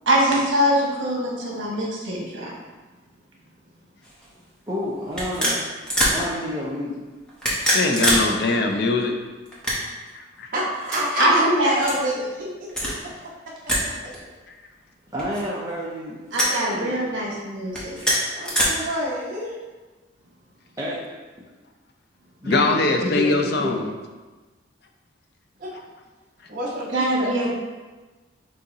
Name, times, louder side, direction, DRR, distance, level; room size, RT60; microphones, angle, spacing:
voice 1, 0.1-2.5 11.2-11.7 16.3-17.9 26.9-27.5, equal, 75° right, -3 dB, 1.3 m, -22 dB
sound 1, 4.0-4.3 5.1-6.2 7.3-8.3 8.5-8.6 9.5-10.1 10.8-11.0 11.8-12.0 12.7-13.0 13.7-13.9 14.1-14.2 15.2-15.7 16.3-16.6 17.7-18.6, equal, 5° left, 0.9 m, -23 dB
voice 2, 4.7-5.6 6.1-7.0 15.1-16.2 16.7-17.0 20.8-21.0 22.4-23.8, left 1 dB, 15° right, -6 dB, 0.5 m, -29 dB
voice 3, 7.6-9.1 10.1-10.5 22.4-23.8, left 3 dB, 55° left, 3 dB, 0.5 m, -22 dB
voice 4, 10.5-12.7 18.3-19.6 25.6-25.7 26.5-27.3, equal, 40° right, -6 dB, 1.0 m, -28 dB
6.4 x 2.8 x 2.7 m, 1.3 s
head